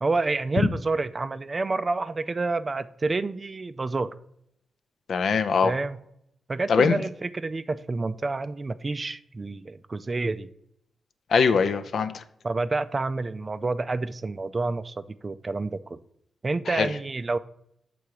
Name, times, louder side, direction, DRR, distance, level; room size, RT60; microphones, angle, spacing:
voice 1, 0.0-4.1 5.6-6.0 6.5-10.5 12.4-16.0 16.4-17.4, right 3 dB, 35° right, 13 dB, 0.3 m, -28 dB
voice 2, 5.1-5.7 6.7-7.0 11.3-12.2 16.7-16.9, left 5 dB, 70° left, 11 dB, 0.5 m, -22 dB
7.0 x 3.8 x 4.7 m, 0.75 s
cardioid pair, 80°, 0 cm